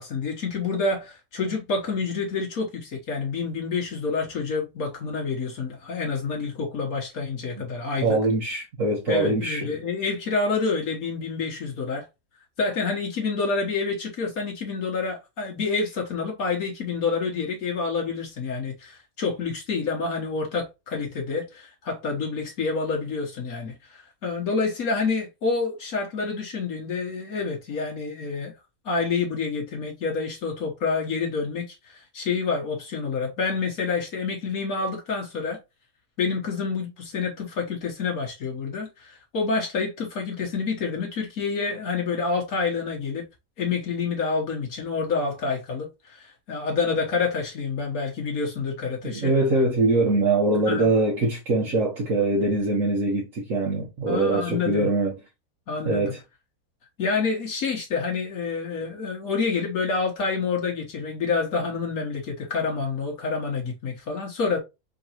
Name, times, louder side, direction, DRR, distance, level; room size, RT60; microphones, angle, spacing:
voice 1, 0.0-8.2 9.1-12.1 12.6-28.5 28.8-31.7 32.1-35.6 36.2-43.2 43.6-49.3 50.7-50.9 54.1-54.9 55.7-56.1 57.0-64.6, left 4 dB, 70° left, 1.5 m, -28 dB
voice 2, 8.0-9.7 49.0-55.1 55.8-56.2, right 2 dB, 60° right, 1.5 m, -23 dB
4.5 x 4.0 x 2.8 m
omnidirectional pair, 1.6 m